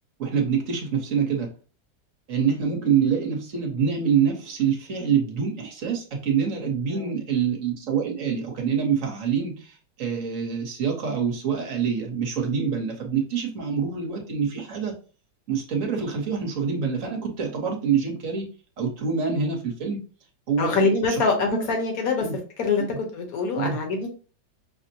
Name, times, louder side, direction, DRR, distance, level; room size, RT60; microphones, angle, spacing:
voice 1, 0.2-1.5 2.3-14.9 15.5-18.5 18.8-20.0 20.5-21.2 21.5-21.7 22.2-22.4 22.8-23.0 23.5-23.8, right 6 dB, 50° right, 1 dB, 1.2 m, -26 dB
voice 2, 20.6-22.2 22.6-24.1, left 4 dB, 55° left, 2 dB, 1.4 m, -24 dB
5.9 x 2.1 x 2.8 m, 0.36 s
omnidirectional pair, 2.0 m